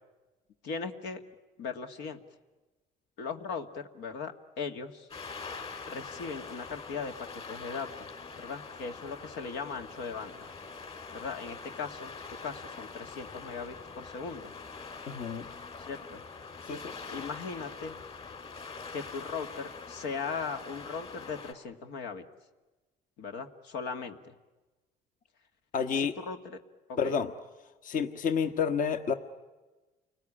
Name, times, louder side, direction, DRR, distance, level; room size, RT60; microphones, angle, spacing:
voice 1, 0.6-1.2 1.6-2.2 3.2-5.1 5.9-7.1 7.5-8.1 8.4-10.5 11.1-12.1 12.4-14.5 15.8-16.2 17.1-18.0 18.9-22.2 23.2-24.3 25.9-26.6 26.9-27.2, left 5 dB, 85° left, 6 dB, 2.0 m, -38 dB
sound 1, 5.1-21.5, left 4 dB, 35° left, 3.8 m, -44 dB
voice 2, 15.1-15.5 16.7-16.9 25.7-26.2 27.0-27.3 27.8-29.1, left 6 dB, 50° left, 8 dB, 1.3 m, -29 dB
29.5 x 20.0 x 10.0 m, 1.2 s
cardioid pair, 110°, 17 cm